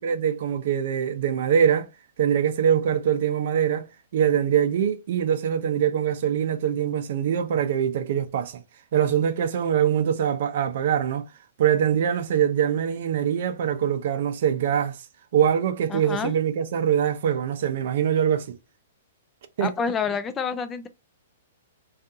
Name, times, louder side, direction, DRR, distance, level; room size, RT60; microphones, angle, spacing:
voice 1, 0.0-1.9 2.2-8.6 8.9-11.2 11.6-15.0 15.3-18.6 19.6-19.7, right 8 dB, 60° right, 0.5 m, -23 dB
voice 2, 15.9-16.3 19.6-20.9, left 6 dB, 20° left, 0.4 m, -28 dB
2.6 x 2.4 x 2.3 m
hypercardioid pair, 135°, 0 cm